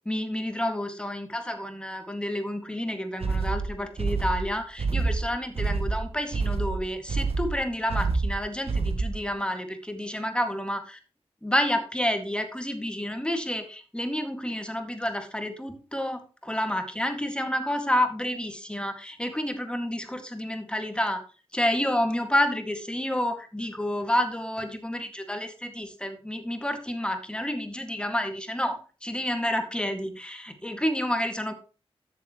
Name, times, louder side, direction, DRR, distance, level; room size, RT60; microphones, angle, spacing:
voice 1, 0.0-11.0 11.4-21.2 21.5-31.5, left 1 dB, 10° left, 6 dB, 2.1 m, -29 dB
sound 1, 3.2-9.3, right 3 dB, 70° right, 1.3 m, -27 dB
13.0 x 7.1 x 3.1 m, 0.34 s
cardioid pair, 65°, 10 cm